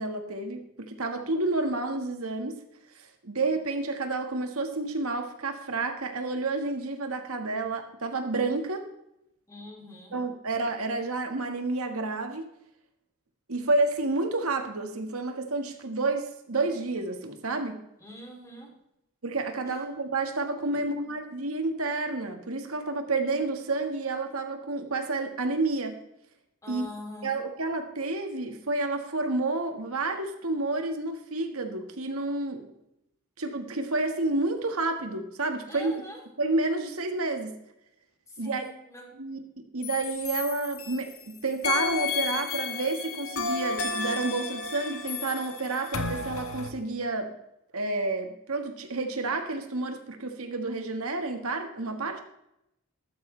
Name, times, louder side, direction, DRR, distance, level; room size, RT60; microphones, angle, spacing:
voice 1, 0.0-2.6 2.9-8.9 10.1-12.5 13.5-17.8 19.2-26.0 26.7-26.9 27.2-32.7 33.4-35.9 36.4-37.6 38.4-38.6 39.2-47.3 47.7-52.2, right 3 dB, 80° right, 5 dB, 1.6 m, -30 dB
voice 2, 9.5-10.2 18.0-18.7 21.0-21.1 26.6-27.4 35.7-36.2 38.3-39.0, left 1 dB, 15° left, 0 dB, 3.1 m, -44 dB
sound 1, 39.8-41.2 41.6-46.7, left 5 dB, 70° left, 1.5 m, -32 dB
14.0 x 13.0 x 3.3 m, 0.81 s
head